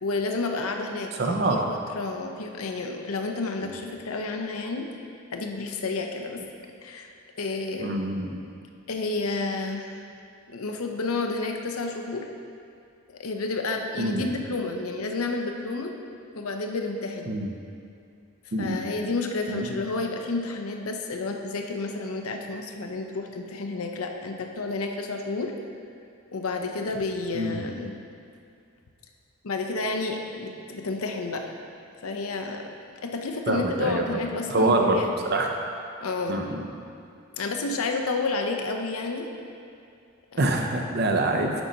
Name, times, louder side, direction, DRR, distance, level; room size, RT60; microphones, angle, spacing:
voice 1, 0.0-4.9 5.3-6.4 6.8-8.0 8.9-10.0 10.5-12.3 13.2-15.9 16.3-17.3 18.6-25.5 26.3-27.9 29.4-31.5 32.0-32.6 33.0-35.1 36.0-36.4 37.3-39.3 40.3-40.4, left 3 dB, 85° left, 3 dB, 0.7 m, -30 dB
voice 2, 1.2-1.7 7.8-8.3 14.0-14.3 17.3-17.5 18.5-18.8 19.5-19.7 27.3-27.6 33.5-34.2 34.5-35.0 35.3-35.6 36.3-36.6 40.4-41.5, right 2 dB, 45° right, 3 dB, 0.6 m, -25 dB
8.2 x 4.0 x 5.0 m, 2.4 s
head